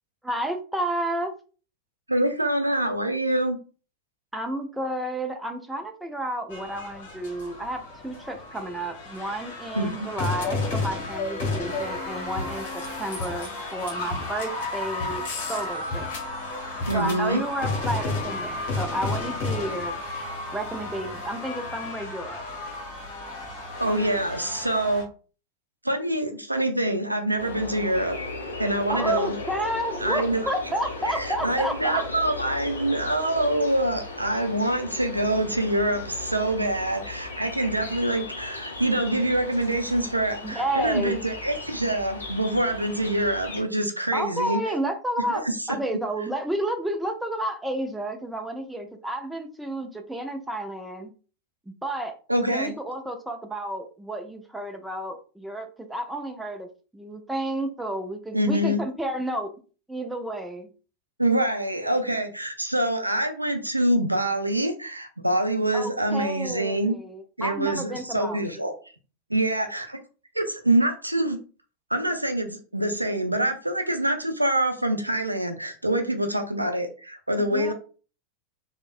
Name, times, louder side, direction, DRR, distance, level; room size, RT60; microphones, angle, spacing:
voice 1, 0.2-1.3 4.3-15.2 15.5-16.1 16.9-19.9 20.5-22.4 28.9-32.0 40.4-41.2 44.1-51.1 51.7-52.2 52.4-56.7 56.9-59.5 59.9-60.7 65.7-68.5 77.4-77.7, right 1 dB, 5° right, 4 dB, 0.5 m, -31 dB
voice 2, 2.1-3.6 9.7-10.1 16.9-17.4 23.8-25.1 25.8-28.2 28.6-29.3 30.0-30.5 31.1-44.6 45.4-45.6 52.3-52.7 58.3-58.8 61.2-66.9 67.4-68.7 69.3-70.0 70.4-71.4 71.9-77.7, right 1 dB, 85° right, 6 dB, 0.4 m, -25 dB
sound 1, 6.5-25.0, left 2 dB, 50° left, 1.0 m, -32 dB
sound 2, 27.4-43.6, left 3 dB, 75° left, 0.6 m, -37 dB
3.2 x 2.1 x 2.4 m, 0.37 s
figure-of-eight pair, 90°, 0 cm